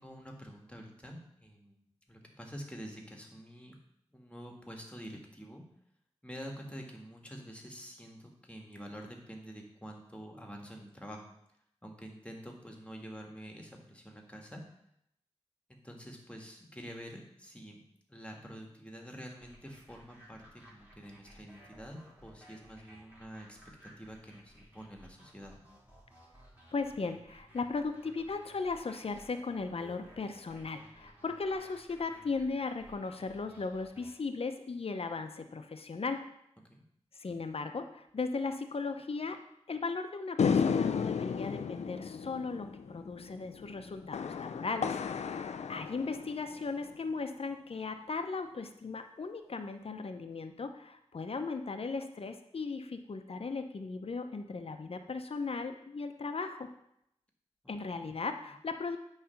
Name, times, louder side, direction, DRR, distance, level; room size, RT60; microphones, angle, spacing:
voice 1, 0.0-3.8 4.1-5.6 6.2-11.2 11.8-14.6 15.7-17.8 18.1-25.5 36.7-36.8 57.9-58.1, equal, 10° left, 1 dB, 1.7 m, -47 dB
sound 1, 19.4-34.2, equal, 15° right, 2.7 m, -58 dB
voice 2, 26.7-36.2 37.2-39.4 39.7-56.7 57.7-59.0, left 4 dB, 60° left, 7 dB, 0.7 m, -37 dB
sound 2, 40.4-46.9, left 6 dB, 80° left, 0.4 m, -33 dB
8.5 x 3.3 x 5.8 m, 0.76 s
cardioid pair, 45°, 11 cm